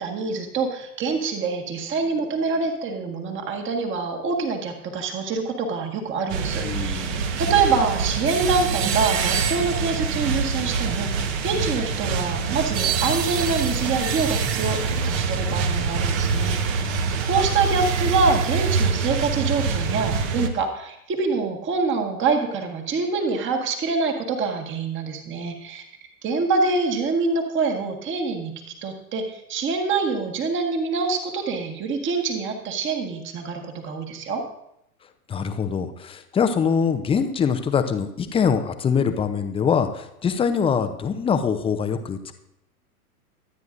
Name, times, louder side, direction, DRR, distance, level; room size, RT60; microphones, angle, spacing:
voice 1, 0.0-7.0 7.4-16.8 17.3-25.8 26.2-34.4, right 4 dB, 25° right, 3 dB, 1.7 m, -25 dB
sound 1, 6.3-20.5, right 5 dB, 45° right, 1.4 m, -25 dB
voice 2, 6.6-7.4 16.6-17.2 35.3-42.3, left 6 dB, 10° left, 8 dB, 0.7 m, -24 dB
24.0 x 9.3 x 2.6 m, 0.81 s
figure-of-eight pair, 100°, 45 cm